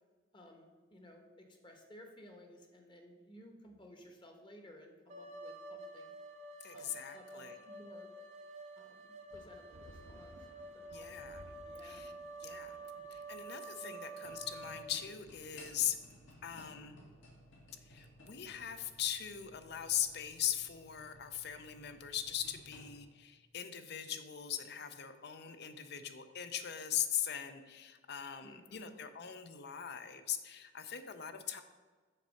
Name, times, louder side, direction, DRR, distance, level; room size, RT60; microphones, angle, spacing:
voice 1, 0.3-6.1 6.7-8.1 8.8-10.3 10.7-12.1 12.6-13.0 13.8-13.9 28.4-28.9, equal, 25° left, 3 dB, 1.0 m, -57 dB
sound 1, 5.1-14.9, right 2 dB, 40° right, 0.7 m, -49 dB
voice 2, 6.6-7.6 10.9-11.4 11.8-12.1 12.4-12.8 13.1-16.0 16.4-17.0 17.9-31.6, left 10 dB, 55° left, 10 dB, 0.6 m, -40 dB
sound 2, 9.3-19.3, right 1 dB, 80° right, 0.8 m, -61 dB
sound 3, 14.2-23.0, left 1 dB, 85° left, 1.9 m, -58 dB
6.6 x 4.3 x 6.3 m, 1.4 s
head